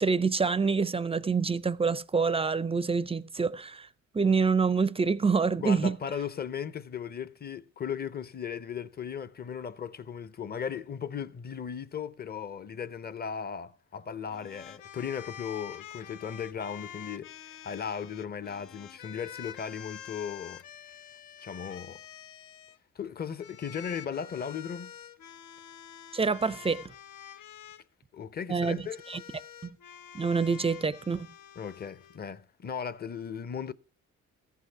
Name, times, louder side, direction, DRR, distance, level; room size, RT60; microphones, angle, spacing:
voice 1, 0.0-3.9 4.1-6.0 26.1-26.8 28.5-28.8 29.1-29.2 30.1-31.3, right 5 dB, 20° right, 0.4 m, -26 dB
voice 2, 5.6-20.6 21.4-22.0 23.0-24.9 28.1-29.0 31.6-33.7, left 7 dB, 30° left, 0.7 m, -37 dB
sound 1, 14.2-22.8 23.4-27.8 28.6-32.2, left 9 dB, 90° left, 0.7 m, -47 dB
14.5 x 5.7 x 5.6 m
cardioid pair, 90°, 30 cm